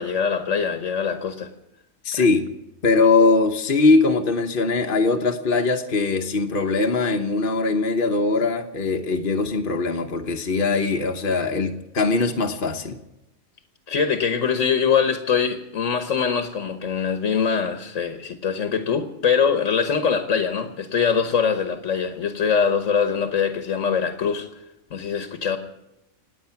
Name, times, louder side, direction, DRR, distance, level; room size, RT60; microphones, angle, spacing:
voice 1, 0.0-1.5 2.1-2.3 13.9-24.5 24.9-25.6, left 6 dB, 60° left, 8 dB, 1.5 m, -23 dB
voice 2, 2.0-2.5 2.8-13.0, left 3 dB, 40° left, 3 dB, 1.2 m, -21 dB
27.0 x 9.2 x 5.8 m, 0.91 s
omnidirectional pair, 1.5 m